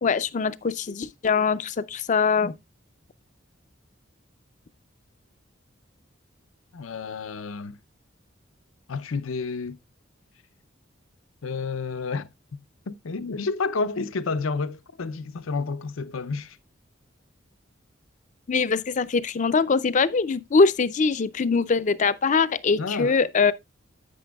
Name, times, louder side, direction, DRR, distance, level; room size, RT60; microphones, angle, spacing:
voice 1, 0.0-2.5 18.5-23.5, left 4 dB, 40° left, 0.4 m, -22 dB
voice 2, 6.7-7.8 8.9-9.8 11.4-12.6 12.9-16.6 22.8-23.2, left 4 dB, 80° left, 0.6 m, -30 dB
9.8 x 8.6 x 2.3 m
head